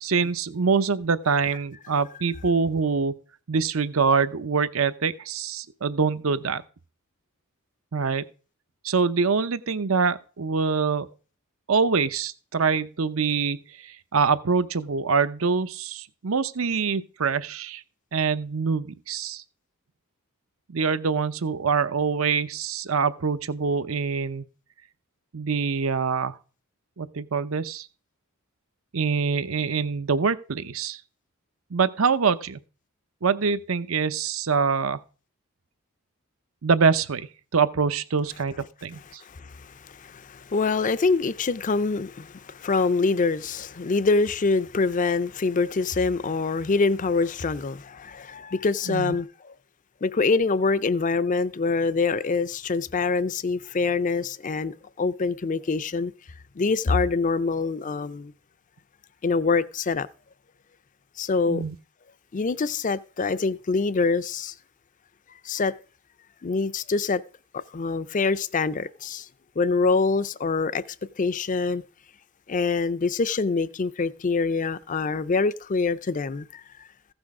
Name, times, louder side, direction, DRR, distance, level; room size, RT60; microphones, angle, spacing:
voice 1, 0.0-3.1 3.5-6.6 7.9-8.2 8.8-11.1 11.7-17.8 18.1-19.4 20.7-24.5 25.3-26.4 27.0-27.9 28.9-31.0 31.7-32.6 33.2-35.0 36.6-39.2 48.9-49.2 61.5-61.7, right 5 dB, 75° right, 0.7 m, -25 dB
voice 2, 39.3-49.5 50.0-56.1 56.6-58.3 59.2-60.1 61.2-61.6 62.3-64.5 65.4-65.7 66.4-67.2 67.5-69.3 69.6-70.8 71.2-71.8 72.5-76.9, left 4 dB, 40° left, 0.5 m, -25 dB
15.0 x 6.2 x 4.8 m
head